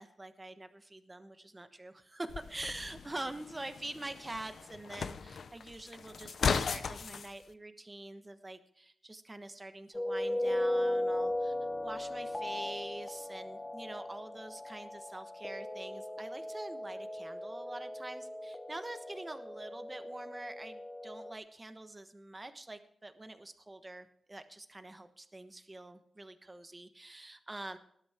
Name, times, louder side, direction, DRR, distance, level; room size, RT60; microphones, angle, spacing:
voice 1, 0.0-11.5 11.8-27.8, right 2 dB, 20° right, 9 dB, 1.2 m, -45 dB
sound 1, 2.3-7.3, left 6 dB, 70° left, 0.7 m, -37 dB
sound 2, 9.9-21.3, left 1 dB, 15° left, 0.8 m, -37 dB
19.0 x 11.5 x 3.6 m, 0.66 s
wide cardioid pair, 135°, 0 cm